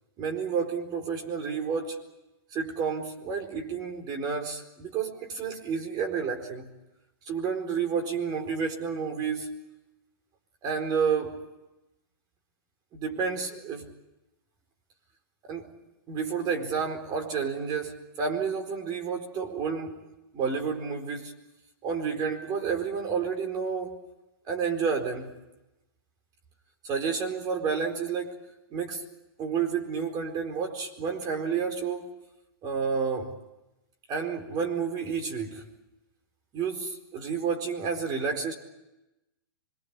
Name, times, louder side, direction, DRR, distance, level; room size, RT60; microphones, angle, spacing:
voice 1, 0.2-2.0 2.5-6.7 7.3-9.6 10.6-11.4 12.9-13.9 15.5-15.6 16.1-20.0 20.3-21.3 21.8-24.0 24.5-25.3 26.8-28.5 28.7-29.0 29.4-32.2 32.6-33.4 34.1-35.6 36.5-38.5, right 6 dB, 30° right, 4 dB, 4.4 m, -30 dB
26.5 x 23.5 x 7.2 m, 0.96 s
hypercardioid pair, 135°, 13 cm